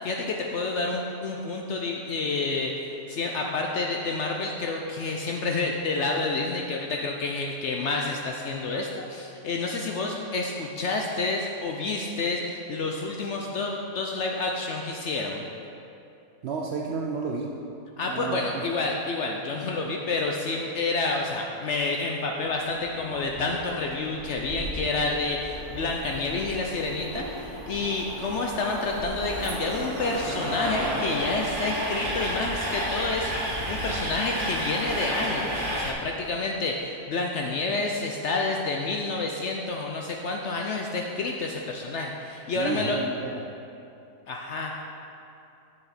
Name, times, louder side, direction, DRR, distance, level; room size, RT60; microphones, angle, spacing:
voice 1, 0.0-15.4 18.0-43.0 44.3-44.8, left 3 dB, 65° left, 1 dB, 0.7 m, -29 dB
voice 2, 16.4-17.6 18.1-18.6 42.5-43.5, right 4 dB, 70° right, 0 dB, 0.6 m, -32 dB
Train, 22.4-35.9, right 1 dB, 40° right, 1.0 m, -32 dB
7.3 x 7.0 x 4.1 m, 2.7 s
omnidirectional pair, 1.7 m